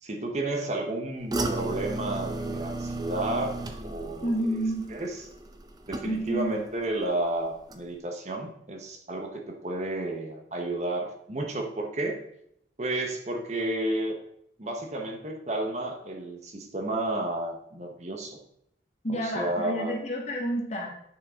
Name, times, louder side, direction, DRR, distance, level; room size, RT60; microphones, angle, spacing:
voice 1, 0.0-3.6 3.8-4.6 4.9-5.3 5.9-12.2 12.8-14.2 14.6-18.4 19.1-19.9, right 1 dB, 40° right, 3 dB, 1.0 m, -32 dB
sound 1, 1.3-6.5 6.8-7.3 7.7-7.8, right 2 dB, 20° right, 0.7 m, -34 dB
voice 2, 4.2-4.9 6.0-6.5 19.0-20.9, equal, 40° left, 0 dB, 1.7 m, -29 dB
9.3 x 5.9 x 3.7 m, 0.74 s
head